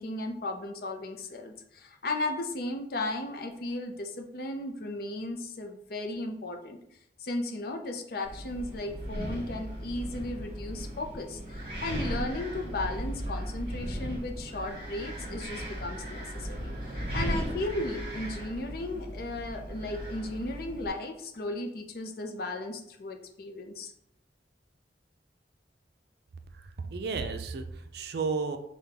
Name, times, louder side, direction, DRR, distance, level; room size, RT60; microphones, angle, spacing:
voice 1, 0.0-6.8 7.2-23.9, left 2 dB, 55° left, 4 dB, 0.5 m, -35 dB
Wind, 8.3-20.9, equal, 30° right, 1.3 m, -37 dB
voice 2, 26.6-28.6, right 4 dB, 60° right, 7 dB, 0.4 m, -33 dB
5.7 x 2.3 x 3.4 m, 0.75 s
head